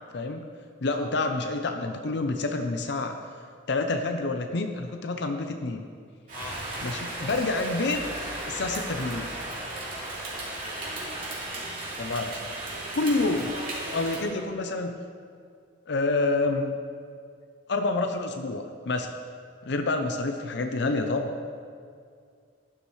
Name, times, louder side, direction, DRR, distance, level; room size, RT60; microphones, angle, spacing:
voice 1, 0.1-0.4 0.8-3.2 3.7-5.8 6.8-8.0 8.5-9.3 12.0-12.5 12.9-13.5 13.9-15.0 15.9-16.8 17.7-19.1 19.6-21.3, left 3 dB, 65° left, 5 dB, 0.6 m, -28 dB
Rain, 6.3-14.3, right 1 dB, 50° right, 2.8 m, -35 dB
voice 2, 9.8-11.1, left 3 dB, 20° left, 1 dB, 0.9 m, -46 dB
12.0 x 9.9 x 3.2 m, 2.2 s
head